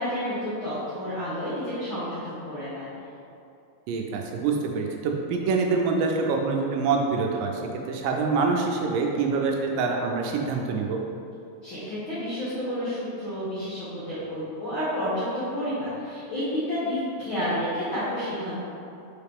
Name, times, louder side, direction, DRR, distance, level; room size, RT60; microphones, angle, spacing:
voice 1, 0.0-2.9 11.6-15.2 15.5-18.6, equal, 85° left, -12 dB, 1.1 m, -30 dB
voice 2, 3.9-7.5 7.9-11.0, right 4 dB, 80° right, 1 dB, 2.1 m, -25 dB
5.6 x 4.9 x 3.5 m, 2.6 s
omnidirectional pair, 4.1 m